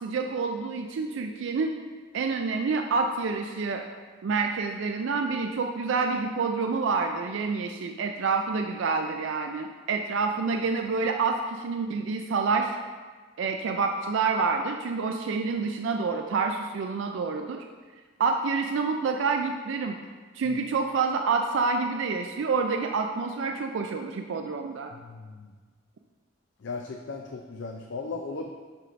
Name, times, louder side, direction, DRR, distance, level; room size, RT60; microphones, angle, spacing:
voice 1, 0.0-1.8 2.1-3.8 4.2-12.7 13.4-17.6 18.2-19.9 20.3-24.9, right 4 dB, 65° right, 4 dB, 0.4 m, -28 dB
voice 2, 24.9-25.4 26.6-28.5, left 3 dB, 60° left, 3 dB, 0.4 m, -36 dB
8.0 x 5.7 x 2.6 m, 1.4 s
head